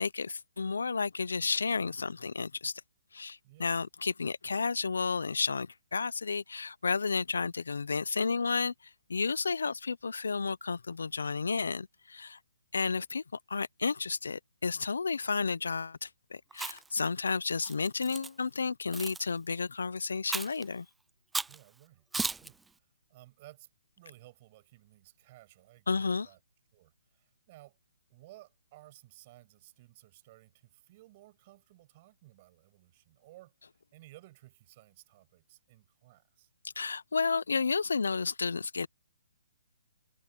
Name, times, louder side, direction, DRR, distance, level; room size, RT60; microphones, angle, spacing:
voice 1, 0.0-2.7 3.1-8.7 9.1-12.4 12.7-13.2 13.5-20.9 25.9-26.3 36.8-38.9, left 4 dB, 80° left, 0.8 m, -32 dB
voice 2, 3.4-3.7 21.5-23.7 24.0-26.4 26.7-27.8 28.1-36.5, right 18 dB, 35° right, 7.8 m, -57 dB
Chewing mastication, 16.5-17.0 17.6-18.3 18.9-19.2 20.3-20.6 21.3-21.6 22.1-22.5, right 4 dB, 5° right, 0.4 m, -35 dB
hypercardioid pair, 150°, 0 cm